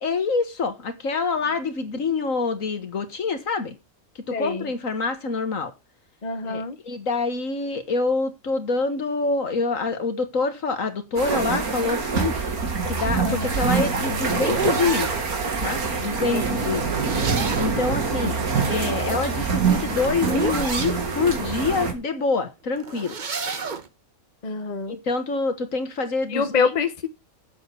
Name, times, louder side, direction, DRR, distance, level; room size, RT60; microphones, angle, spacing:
voice 1, 0.0-3.8 4.3-5.7 6.4-12.4 12.9-15.1 15.6-16.9 17.6-18.4 18.7-23.1 24.9-26.7, left 4 dB, 65° left, 2.0 m, -26 dB
voice 2, 4.3-4.7 6.2-6.8 13.2-13.5 16.3-16.5 24.4-25.0 26.3-27.1, left 5 dB, 30° left, 1.1 m, -26 dB
sound 1, 11.2-21.9, right 5 dB, 85° right, 2.3 m, -25 dB
sound 2, 13.8-15.2 16.7-17.9 19.3-21.0 22.8-23.9, right 4 dB, 35° right, 1.1 m, -30 dB
7.8 x 7.8 x 6.8 m
omnidirectional pair, 1.5 m